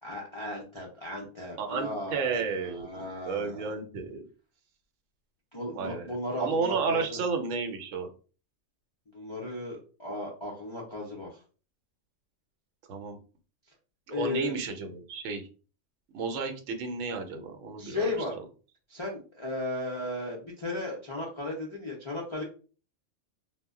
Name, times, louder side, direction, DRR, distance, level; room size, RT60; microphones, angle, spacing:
voice 1, 0.0-3.7 5.5-7.2 9.1-11.4 14.1-14.5 17.8-18.4 18.9-22.4, left 2 dB, 50° left, -4 dB, 0.3 m, -35 dB
voice 2, 1.6-4.3 5.7-6.1 6.4-8.1 12.9-13.2 14.1-15.5 16.1-18.1, right 5 dB, 80° right, 6 dB, 0.9 m, -32 dB
2.1 x 2.0 x 3.5 m, 0.37 s
omnidirectional pair, 1.3 m